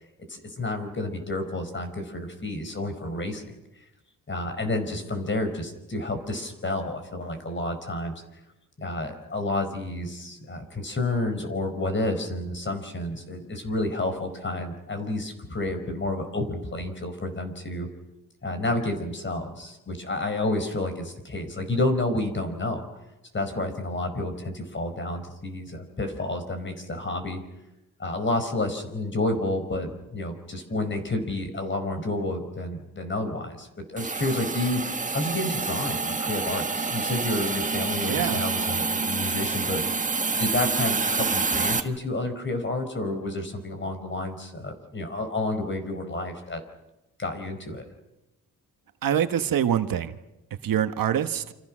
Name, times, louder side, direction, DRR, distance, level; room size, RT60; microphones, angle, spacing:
voice 1, 0.3-3.4 4.3-8.4 8.8-17.9 18.4-22.9 23.3-27.4 28.0-39.8 40.3-46.6 47.2-47.9, left 2 dB, 35° left, 7 dB, 4.9 m, -30 dB
Hiss, 34.0-41.8, right 4 dB, 20° right, 1.5 m, -27 dB
voice 2, 38.1-38.4 49.0-50.1 50.6-51.5, right 9 dB, 75° right, 9 dB, 1.4 m, -25 dB
29.0 x 26.5 x 6.3 m, 0.97 s
cardioid pair, 110°, 34 cm